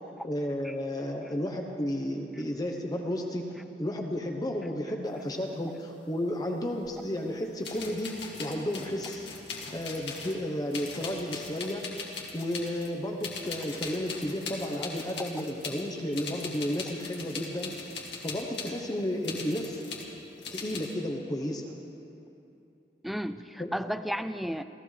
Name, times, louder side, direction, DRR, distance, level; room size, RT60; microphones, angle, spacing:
voice 1, 0.2-3.5 3.8-9.3 9.7-11.8 12.3-17.8 18.2-19.8 20.5-21.7 23.6-23.7, left 1 dB, 20° left, 2 dB, 0.9 m, -32 dB
sound 1, 6.8-6.9 7.6-10.4 10.7-12.9 13.2-15.8 16.1-18.7 19.2-20.1 20.4-20.9, left 4 dB, 65° left, 2.2 m, -40 dB
voice 2, 23.0-24.6, equal, ahead, 10 dB, 0.3 m, -34 dB
28.0 x 15.0 x 3.3 m, 2.8 s
head